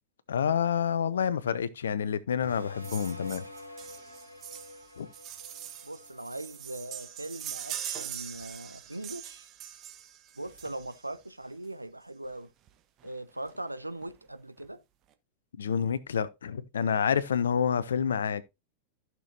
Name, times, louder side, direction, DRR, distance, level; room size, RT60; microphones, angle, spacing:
voice 1, 0.3-3.4 5.0-5.1 15.6-18.4, left 7 dB, 65° left, 0.8 m, -28 dB
sound 1, 2.4-7.6, left 2 dB, 85° left, 1.8 m, -46 dB
sound 2, 2.8-11.2 12.2-12.3 12.7-12.8 13.0-13.1 13.5-14.1 14.6-14.7, right 11 dB, 35° right, 1.1 m, -42 dB
voice 2, 5.8-9.5 10.3-12.5 13.0-14.8, right 1 dB, 85° right, 0.6 m, -40 dB
14.5 x 6.2 x 2.7 m
figure-of-eight pair, 90°, 0 cm